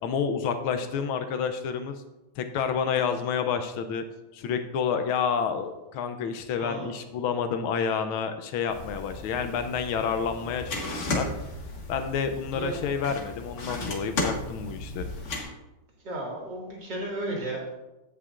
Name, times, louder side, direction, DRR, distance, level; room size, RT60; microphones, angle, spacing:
voice 1, 0.0-2.0 2.4-4.0 4.3-11.3 11.9-15.1, left 6 dB, 80° left, 8 dB, 1.4 m, -29 dB
voice 2, 6.6-7.0 12.5-12.8 16.0-17.7, right 1 dB, 55° right, -2 dB, 2.6 m, -34 dB
sound 1, 8.7-15.4, left 2 dB, 40° left, 1.2 m, -35 dB
15.5 x 5.7 x 2.4 m, 1.0 s
omnidirectional pair, 2.4 m